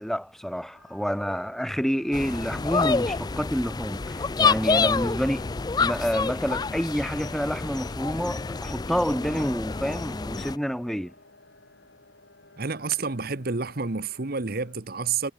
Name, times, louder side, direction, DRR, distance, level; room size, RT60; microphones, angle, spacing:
voice 1, 0.0-5.5 5.8-11.1, equal, ahead, 1.5 m, -28 dB
sound 1, 0.7-14.8, left 2 dB, 70° left, 6.4 m, -56 dB
sound 2, 2.1-10.6, left 4 dB, 20° left, 0.4 m, -27 dB
voice 2, 12.6-15.3, right 5 dB, 50° right, 1.1 m, -29 dB
head